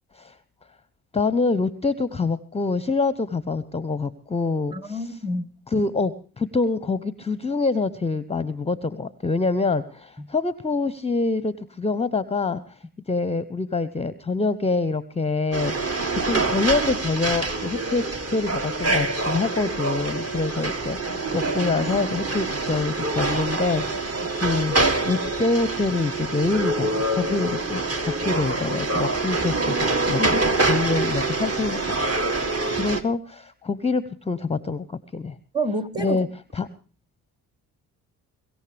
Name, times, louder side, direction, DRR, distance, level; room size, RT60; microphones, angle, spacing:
voice 1, 1.1-5.0 5.7-12.8 13.1-30.2 30.7-32.3 32.7-35.3 36.0-36.3 36.5-36.7, left 3 dB, 15° left, 0.7 m, -26 dB
voice 2, 4.7-5.5 10.2-10.3 30.2-30.5 35.5-36.2, right 1 dB, 10° right, 1.4 m, -28 dB
sound 1, 15.5-33.0, right 2 dB, 30° right, 1.7 m, -25 dB
24.0 x 14.5 x 3.4 m
hypercardioid pair, 45°, 45 cm